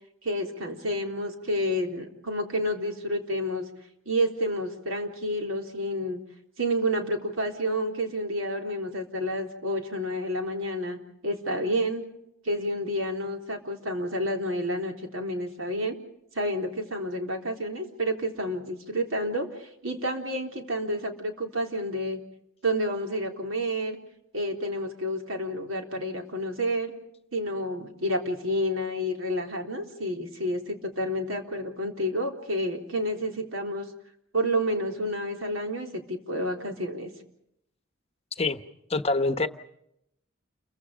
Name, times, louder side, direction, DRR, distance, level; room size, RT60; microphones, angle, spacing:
voice 1, 0.2-3.7 4.1-6.2 6.6-11.0 11.2-12.0 12.4-16.0 16.3-22.2 22.6-24.0 24.3-26.9 27.3-33.9 34.3-37.1, equal, 85° right, 2 dB, 3.8 m, -29 dB
voice 2, 38.9-39.5, left 3 dB, 30° left, 9 dB, 1.0 m, -25 dB
29.5 x 23.5 x 5.1 m, 0.77 s
head